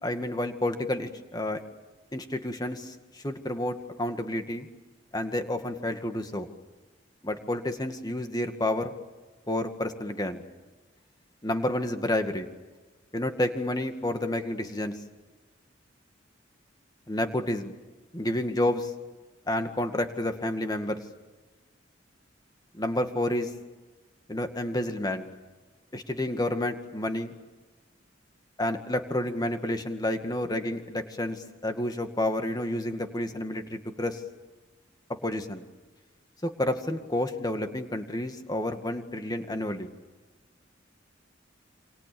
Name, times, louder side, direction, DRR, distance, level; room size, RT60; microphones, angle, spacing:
voice 1, 0.0-1.6 2.1-4.7 5.1-6.5 7.2-8.9 9.5-10.4 11.4-12.5 13.1-14.9 17.1-17.7 18.1-18.9 19.5-21.0 22.7-23.5 24.3-25.2 25.9-27.3 28.6-34.2 35.2-35.6 36.4-39.9, left 1 dB, 20° left, 6 dB, 2.1 m, -30 dB
28.0 x 26.0 x 7.1 m, 1.2 s
head